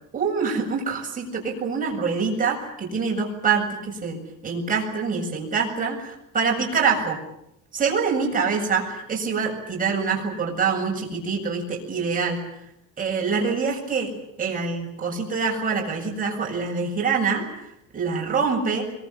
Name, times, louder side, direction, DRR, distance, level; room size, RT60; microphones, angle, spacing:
voice 1, 0.1-7.2 7.7-12.4 13.0-14.1 14.4-17.4 17.9-18.9, right 5 dB, 25° right, 0 dB, 7.5 m, -25 dB
25.5 x 24.0 x 8.4 m, 0.81 s
cardioid pair, 165°, 32 cm